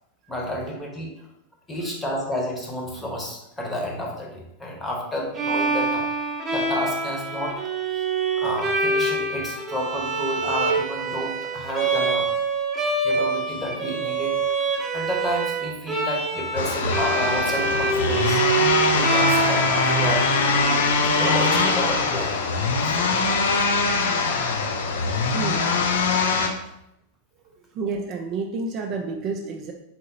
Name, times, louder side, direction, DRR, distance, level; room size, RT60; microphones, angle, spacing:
voice 1, 0.3-1.1 1.7-7.6 7.9-8.0 8.3-12.3 13.0-18.4 18.9-22.4 22.8-23.0, equal, 10° left, -1 dB, 1.0 m, -31 dB
Bowed string instrument, 5.3-22.3, right 3 dB, 20° right, 0.8 m, -26 dB
sound 1, 16.6-26.5, left 4 dB, 60° left, 0.5 m, -22 dB
voice 2, 25.3-25.6 27.8-29.7, right 4 dB, 35° right, 2 dB, 0.4 m, -30 dB
4.1 x 3.6 x 2.7 m, 0.84 s
figure-of-eight pair, 90°, 0 cm